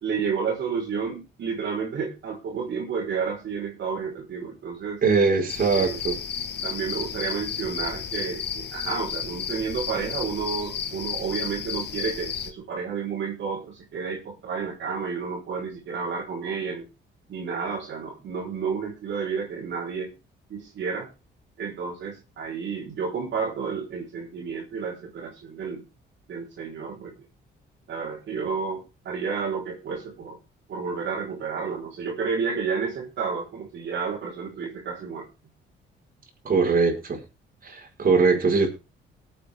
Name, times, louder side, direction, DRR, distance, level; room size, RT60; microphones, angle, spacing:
voice 1, 0.0-5.0 5.7-6.0 6.6-16.9 17.3-20.1 20.5-21.1 21.6-25.9 26.3-27.1 27.9-30.4 30.7-35.3, right 5 dB, 65° right, -4 dB, 4.2 m, -31 dB
voice 2, 5.0-6.2 36.5-37.2 37.6-38.7, right 4 dB, 45° right, 1 dB, 5.1 m, -21 dB
sound 1, 5.5-12.5, left 7 dB, 60° left, 1.7 m, -32 dB
20.0 x 8.6 x 3.6 m, 0.30 s
cardioid pair, 90°, 20 cm